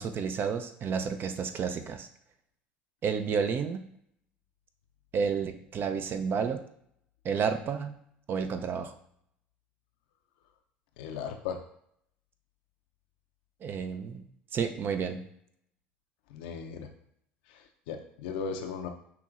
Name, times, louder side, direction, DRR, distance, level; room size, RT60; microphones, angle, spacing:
voice 1, 0.0-2.1 3.0-3.8 5.1-6.6 7.2-7.9 8.3-8.9 13.6-14.3 14.5-15.2, right 6 dB, 45° right, 7 dB, 0.5 m, -31 dB
voice 2, 11.0-11.6 16.3-16.9 17.5-18.9, left 6 dB, 75° left, 4 dB, 0.5 m, -37 dB
5.8 x 3.0 x 2.5 m, 0.70 s
hypercardioid pair, 75°, 5 cm